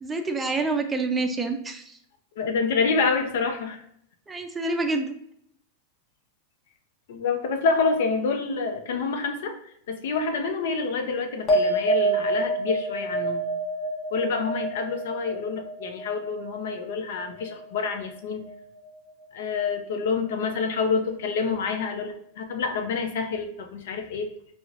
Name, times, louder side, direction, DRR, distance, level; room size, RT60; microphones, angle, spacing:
voice 1, 0.0-2.0 4.3-5.1, right 3 dB, 15° right, 5 dB, 0.4 m, -27 dB
voice 2, 2.4-3.8 7.1-13.4 14.1-18.4 19.3-24.3, left 4 dB, 70° left, 6 dB, 0.5 m, -27 dB
sound 1, 11.5-18.2 18.5-19.1, right 2 dB, 40° left, 0.8 m, -28 dB
4.4 x 2.0 x 2.4 m, 0.69 s
hypercardioid pair, 110°, 0 cm